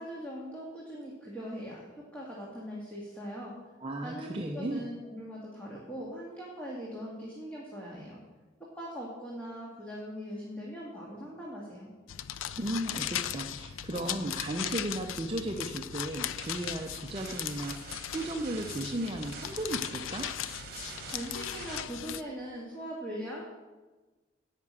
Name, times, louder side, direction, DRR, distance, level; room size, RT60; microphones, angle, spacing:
voice 1, 0.0-3.5 4.0-8.2 8.7-11.9 21.1-23.4, equal, 10° left, -5 dB, 1.9 m, -41 dB
voice 2, 3.8-4.9 12.6-17.8 18.1-20.3, right 1 dB, 25° right, 2 dB, 0.6 m, -35 dB
sound 1, 12.1-22.2, left 10 dB, 90° left, 0.4 m, -38 dB
sound 2, 16.4-21.8, right 5 dB, 50° right, 1.4 m, -46 dB
11.0 x 6.0 x 8.7 m, 1.2 s
head